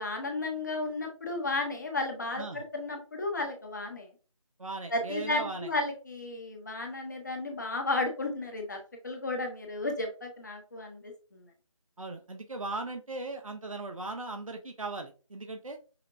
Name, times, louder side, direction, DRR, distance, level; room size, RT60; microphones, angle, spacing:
voice 1, 0.0-4.1 4.9-8.8 9.0-11.5, left 2 dB, 35° left, 3 dB, 0.8 m, -33 dB
voice 2, 4.6-5.7 12.0-15.8, right 3 dB, 80° right, 4 dB, 0.8 m, -38 dB
5.7 x 2.1 x 2.6 m, 0.35 s
figure-of-eight pair, 165°, 17 cm